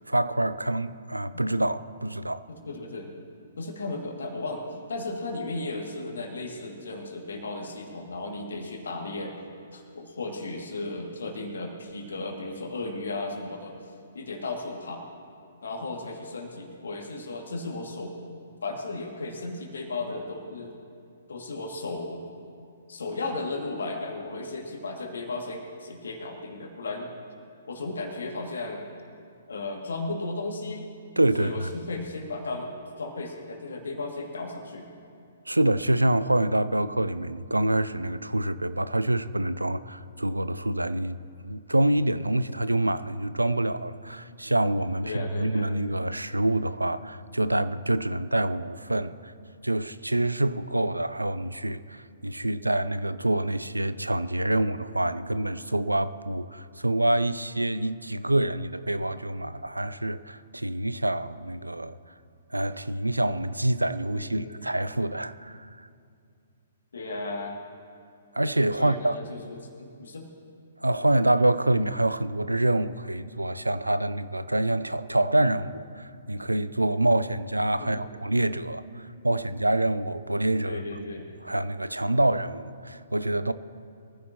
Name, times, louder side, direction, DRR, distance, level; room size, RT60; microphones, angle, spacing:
voice 1, 0.1-2.4 31.2-31.7 35.5-49.3 49.6-62.0 62.5-65.9 68.3-69.2 70.8-80.8 81.4-83.5, right 1 dB, 85° right, 0.5 m, -26 dB
voice 2, 2.5-3.2 3.6-9.4 9.7-13.8 14.1-15.1 15.6-18.1 18.6-20.7 21.3-22.3 22.9-27.1 27.7-28.8 29.5-30.9 31.4-32.7 33.0-34.9 45.0-45.7 64.1-64.6 66.9-67.6 68.8-70.3 77.8-78.1 80.6-81.3, left 2 dB, 65° left, 2.4 m, -35 dB
23.5 x 15.0 x 3.0 m
figure-of-eight pair, 120°, 0 cm